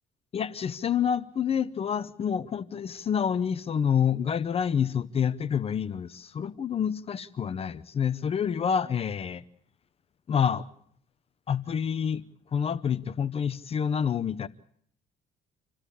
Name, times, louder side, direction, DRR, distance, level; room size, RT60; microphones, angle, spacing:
voice 1, 0.3-9.4 10.3-10.7 11.5-12.2 12.5-14.5, left 7 dB, 40° left, 0.9 m, -28 dB
27.5 x 15.5 x 8.4 m
cardioid pair, 110°, 16 cm